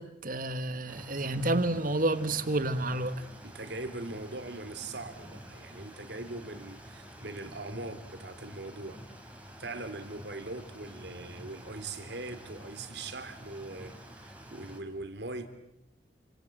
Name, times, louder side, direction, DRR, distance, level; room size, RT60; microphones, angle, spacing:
voice 1, 0.0-3.2, right 2 dB, 50° right, 1.7 m, -30 dB
sound 1, 0.9-14.8, equal, 10° right, 4.0 m, -48 dB
voice 2, 3.4-9.0 9.6-15.5, right 2 dB, 65° right, 2.9 m, -41 dB
28.5 x 26.0 x 7.8 m
head